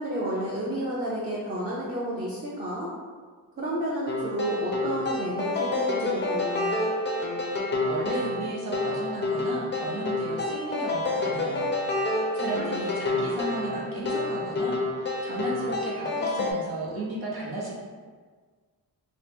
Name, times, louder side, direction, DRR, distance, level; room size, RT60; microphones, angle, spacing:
voice 1, 0.0-2.9 3.6-6.7 12.5-12.7, equal, 25° right, -8 dB, 0.5 m, -31 dB
sound 1, 4.1-16.5, left 2 dB, 30° left, 0.4 m, -29 dB
voice 2, 7.8-11.7 12.0-17.7, right 2 dB, 80° right, -4 dB, 0.9 m, -34 dB
2.9 x 2.1 x 3.3 m, 1.5 s
wide cardioid pair, 120°, 37 cm